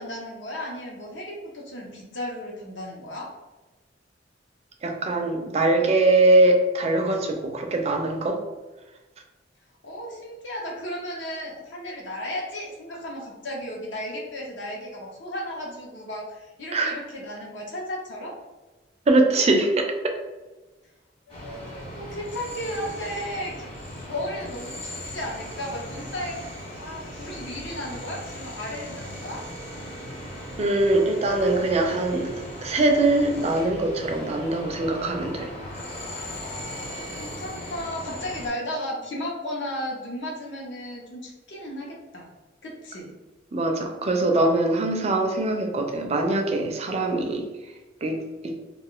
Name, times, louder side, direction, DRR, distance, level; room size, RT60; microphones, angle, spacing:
voice 1, 0.0-3.3 9.8-18.4 21.3-23.7 24.1-26.4 26.7-29.4 36.9-42.3 42.6-43.1, left 1 dB, 70° left, -1 dB, 0.8 m, -34 dB
voice 2, 4.8-8.4 16.7-17.0 19.1-19.9 30.6-35.5 43.5-48.6, right 2 dB, 35° right, 3 dB, 0.4 m, -22 dB
sound 1, 21.3-38.5, equal, 35° left, 1.1 m, -38 dB
2.4 x 2.3 x 3.7 m, 1.1 s
head